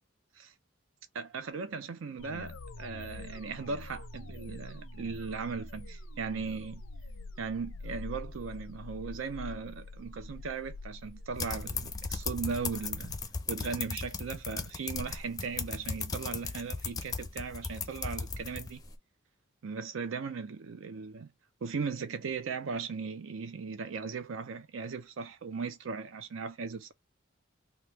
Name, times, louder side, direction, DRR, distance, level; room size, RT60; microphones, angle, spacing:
voice 1, 1.1-6.8 7.4-13.1 13.5-18.8 19.6-21.3 21.6-26.9, right 5 dB, 80° right, 0.5 m, -38 dB
sound 1, 2.2-13.3, left 2 dB, 90° left, 0.5 m, -45 dB
sound 2, 11.3-18.9, left 4 dB, 20° left, 0.5 m, -37 dB
3.0 x 2.3 x 3.4 m
head